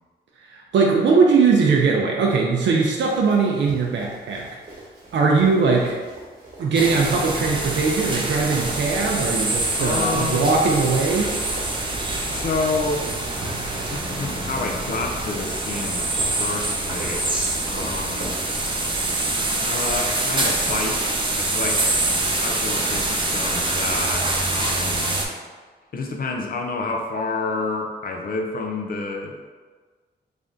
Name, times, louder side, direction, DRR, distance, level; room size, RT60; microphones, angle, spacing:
voice 1, 0.5-4.5 5.1-6.0 6.6-11.3, right 4 dB, 85° right, -1 dB, 0.5 m, -20 dB
Run, 3.1-19.3, right 2 dB, 60° right, 1.1 m, -41 dB
sound 1, 6.7-25.2, right 2 dB, 25° right, 0.5 m, -25 dB
voice 2, 9.8-10.6 12.2-16.1 16.4-18.4 19.6-22.0 22.4-25.2 25.9-29.4, left 3 dB, 55° left, 2 dB, 0.4 m, -29 dB
3.3 x 2.6 x 3.6 m, 1.5 s
wide cardioid pair, 130°, 18 cm